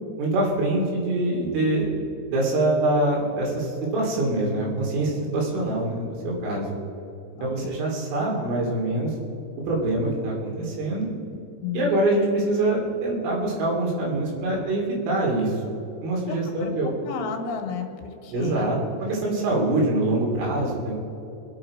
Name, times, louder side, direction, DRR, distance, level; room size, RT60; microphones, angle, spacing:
voice 1, 0.2-2.0 2.3-6.7 7.4-9.1 9.7-11.1 11.7-15.6 16.0-16.9 18.3-20.9, right 2 dB, 70° right, -2 dB, 5.2 m, -24 dB
voice 2, 7.4-7.8 11.6-12.0 16.3-18.9, left 6 dB, 85° left, 4 dB, 4.1 m, -33 dB
25.5 x 9.2 x 4.9 m, 2.9 s
omnidirectional pair, 6.0 m